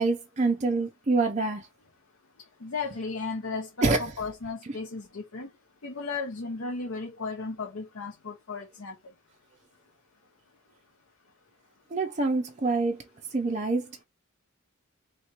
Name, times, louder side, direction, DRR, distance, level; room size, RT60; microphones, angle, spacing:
voice 1, 0.0-1.6 3.8-4.0 11.9-13.0 13.3-13.9, right 3 dB, 35° right, 0.5 m, -26 dB
voice 2, 2.6-3.7 4.0-5.5 5.8-9.0, left 4 dB, 85° left, 0.9 m, -35 dB
3.3 x 3.0 x 4.3 m
head